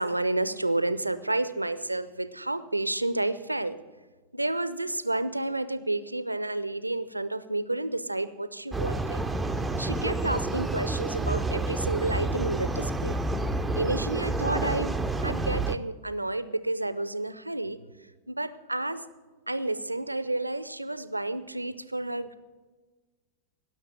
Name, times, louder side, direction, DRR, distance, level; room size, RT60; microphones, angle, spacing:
voice 1, 0.0-3.8 4.3-9.2 9.8-13.2 13.7-17.8 18.3-19.1 19.5-22.3, right 2 dB, 85° right, 15 dB, 0.6 m, -30 dB
sound 1, 8.7-15.8, right 2 dB, 5° right, 0.6 m, -29 dB
17.5 x 6.5 x 7.6 m, 1.3 s
figure-of-eight pair, 90°, 0 cm